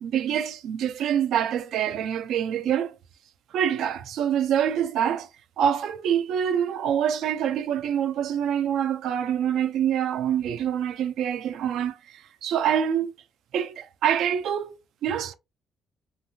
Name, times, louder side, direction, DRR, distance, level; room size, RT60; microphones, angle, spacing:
voice 1, 0.0-2.9 3.5-5.3 5.6-13.1 13.5-15.3, right 9 dB, 80° right, 0.4 m, -26 dB
3.2 x 2.4 x 2.6 m
cardioid pair, 90°, 0 cm